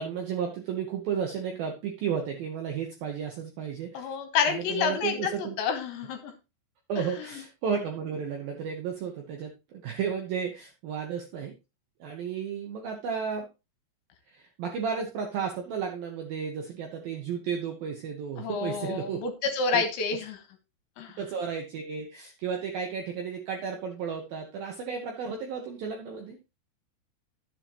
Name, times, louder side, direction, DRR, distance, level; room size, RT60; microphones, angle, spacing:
voice 1, 0.0-4.1 4.5-5.6 6.9-11.6 12.0-13.5 14.3-19.2 19.7-19.8 21.2-26.4, right 6 dB, 75° right, 2 dB, 2.2 m, -33 dB
voice 2, 4.0-6.3 7.2-7.3 18.4-20.4 21.0-21.2, left 6 dB, 70° left, 7 dB, 3.4 m, -29 dB
12.5 x 7.7 x 3.0 m, 0.26 s
omnidirectional pair, 5.8 m